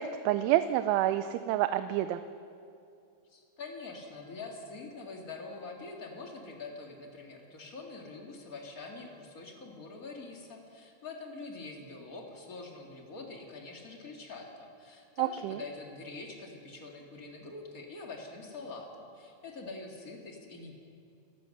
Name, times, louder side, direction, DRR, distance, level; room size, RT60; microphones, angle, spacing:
voice 1, 0.0-2.2 15.2-15.6, right 13 dB, 90° right, 10 dB, 3.1 m, -28 dB
voice 2, 3.3-18.9 19.1-20.7, left 3 dB, 55° left, 1 dB, 0.9 m, -45 dB
29.0 x 15.0 x 6.6 m, 2.5 s
omnidirectional pair, 5.3 m